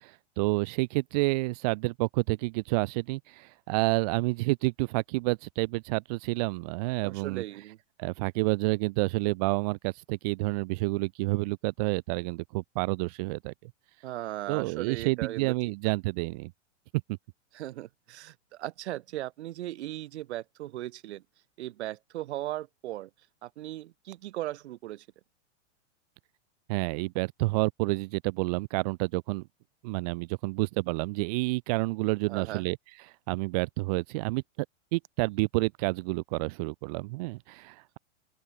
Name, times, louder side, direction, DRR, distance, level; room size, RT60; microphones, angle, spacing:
voice 1, 0.0-7.4 8.0-13.7 14.5-16.5 26.7-29.5 29.8-32.8 33.3-34.4 34.9-38.0, right 24 dB, 35° right, 0.5 m, -29 dB
voice 2, 7.0-7.8 14.0-15.5 17.5-21.2 21.6-23.1 23.4-25.1 32.3-32.7, right 15 dB, 65° right, 1.8 m, -37 dB
open air
supercardioid pair, 155°, 36 cm